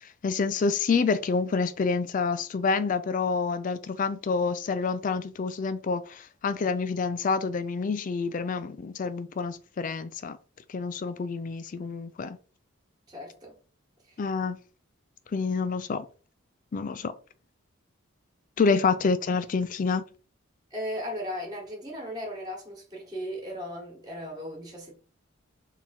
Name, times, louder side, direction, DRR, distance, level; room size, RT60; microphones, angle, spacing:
voice 1, 0.2-10.4 10.7-12.4 14.2-14.6 15.3-16.1 16.7-17.1 18.6-20.0, left 4 dB, 40° left, 0.3 m, -27 dB
voice 2, 13.1-13.6 14.0-14.2 20.7-24.9, equal, 20° right, 1.4 m, -36 dB
3.6 x 2.9 x 4.2 m
head